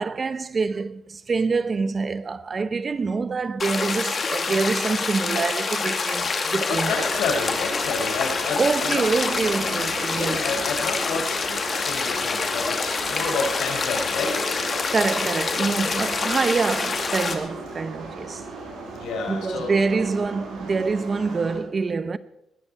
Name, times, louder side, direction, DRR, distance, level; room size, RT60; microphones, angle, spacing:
voice 1, 0.0-7.1 8.6-10.4 14.9-18.4 19.3-22.2, right 4 dB, 35° right, 0.8 m, -25 dB
sound 1, 3.6-17.3, left 4 dB, 40° left, 2.3 m, -26 dB
voice 2, 6.7-9.0 10.1-14.3 18.9-19.7, left 4 dB, 80° left, 5.6 m, -30 dB
sound 2, 6.8-21.6, right 3 dB, 85° right, 6.7 m, -37 dB
20.5 x 15.0 x 4.5 m
cardioid pair, 90°, 0 cm